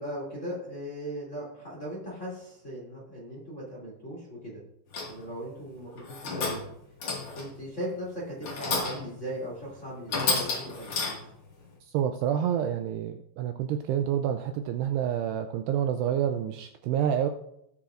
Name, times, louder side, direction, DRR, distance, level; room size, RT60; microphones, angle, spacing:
voice 1, 0.0-4.6 5.1-6.6 7.3-11.2, right 1 dB, 20° left, -5 dB, 2.3 m, -38 dB
sound 1, 4.9-5.3 6.0-6.7 7.0-7.6 8.4-9.1 9.6-9.7 10.1-11.4, left 4 dB, 45° left, 2.1 m, -31 dB
voice 2, 11.9-17.3, right 9 dB, 85° right, 7 dB, 2.5 m, -28 dB
18.5 x 6.9 x 2.5 m, 0.78 s
omnidirectional pair, 5.2 m